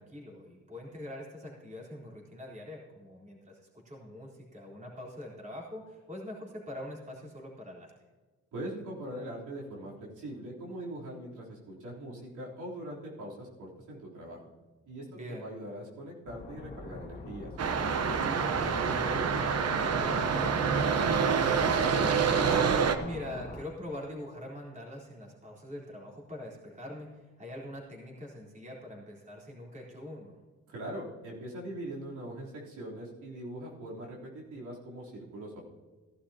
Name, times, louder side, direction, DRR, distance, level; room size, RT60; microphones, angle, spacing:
voice 1, 0.0-7.9 15.1-15.5 23.0-30.4, left 1 dB, 25° right, -3 dB, 3.9 m, -43 dB
voice 2, 8.5-14.4 14.9-17.5 18.2-18.5 18.8-22.2 30.7-35.6, right 1 dB, 85° right, -4 dB, 3.6 m, -41 dB
sound 1, 16.2-23.6, left 3 dB, 30° left, 1.9 m, -44 dB
sound 2, 17.6-22.9, right 6 dB, 55° right, 1.1 m, -27 dB
17.0 x 11.5 x 2.9 m, 1.3 s
cardioid pair, 110°, 30 cm